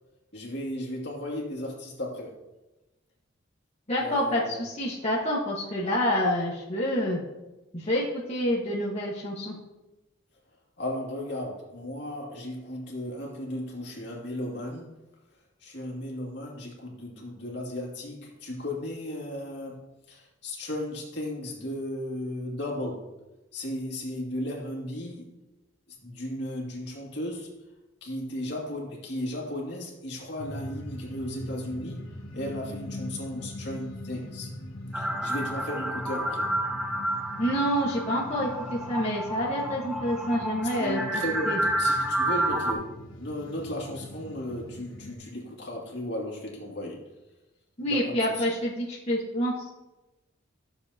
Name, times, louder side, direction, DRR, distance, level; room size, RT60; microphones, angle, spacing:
voice 1, 0.3-2.4 4.0-4.6 10.8-14.9 15.6-23.1 23.5-25.3 26.0-27.5 28.0-32.0 32.3-34.5 34.9-36.5 40.8-42.9 43.2-47.1 47.9-48.5, left 1 dB, 55° left, -2 dB, 2.3 m, -35 dB
voice 2, 3.9-7.2 7.7-9.6 37.4-41.6 47.8-49.7, equal, 30° left, -6 dB, 1.4 m, -28 dB
sound 1, 30.4-45.1, left 1 dB, 75° left, 1.4 m, -42 dB
sound 2, 34.9-42.7, right 1 dB, 5° right, 0.7 m, -30 dB
13.5 x 7.1 x 2.8 m, 1.0 s
head